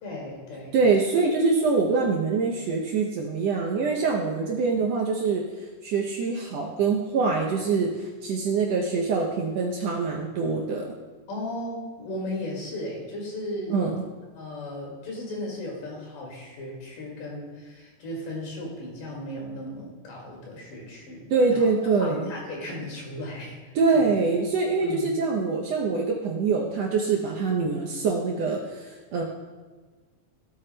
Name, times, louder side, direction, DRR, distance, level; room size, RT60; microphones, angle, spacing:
voice 1, 0.0-0.8 11.3-13.8 14.4-21.7 22.0-23.6 23.9-24.0 24.8-25.1, left 1 dB, 80° left, -2 dB, 3.6 m, -36 dB
voice 2, 0.7-5.4 5.8-10.9 13.7-14.0 21.3-22.3 23.7-29.2, right 4 dB, 75° right, -1 dB, 1.6 m, -24 dB
16.0 x 8.3 x 2.2 m, 1.4 s
omnidirectional pair, 3.7 m